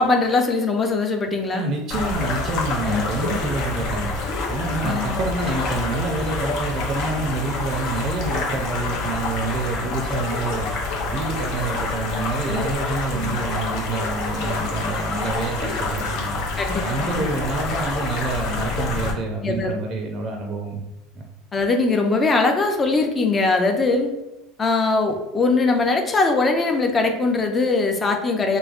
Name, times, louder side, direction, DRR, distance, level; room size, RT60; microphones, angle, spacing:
voice 1, 0.0-1.6 2.8-3.0 4.8-5.2 12.4-12.7 13.1-13.4 15.1-15.2 16.6-17.3 19.4-19.7 21.5-24.1 24.6-28.6, left 3 dB, 25° left, 4 dB, 0.5 m, -21 dB
voice 2, 1.5-4.1 4.5-10.7 11.0-16.4 16.8-20.8 21.1-21.2, right 3 dB, 45° right, 2 dB, 0.4 m, -27 dB
sound 1, 1.9-19.1, left 3 dB, 65° left, 0.6 m, -27 dB
3.2 x 2.1 x 2.4 m, 1.0 s
supercardioid pair, 110°, 0 cm